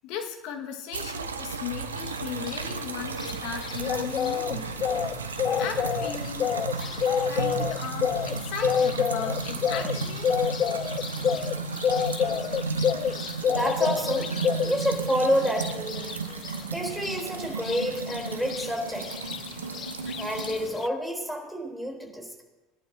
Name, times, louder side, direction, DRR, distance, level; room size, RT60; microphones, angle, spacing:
voice 1, 0.0-5.1 5.6-10.3 11.2-11.3, left 7 dB, 60° left, 3 dB, 1.8 m, -37 dB
sound 1, 0.9-20.7, right 5 dB, 85° right, 1.0 m, -34 dB
sound 2, 2.0-20.9, left 8 dB, 40° left, 0.5 m, -29 dB
voice 2, 13.4-14.3 14.6-16.1 16.7-19.1 20.2-22.4, equal, ahead, 0 dB, 4.0 m, -29 dB
21.0 x 11.0 x 2.9 m, 1.1 s
hypercardioid pair, 75°, 0 cm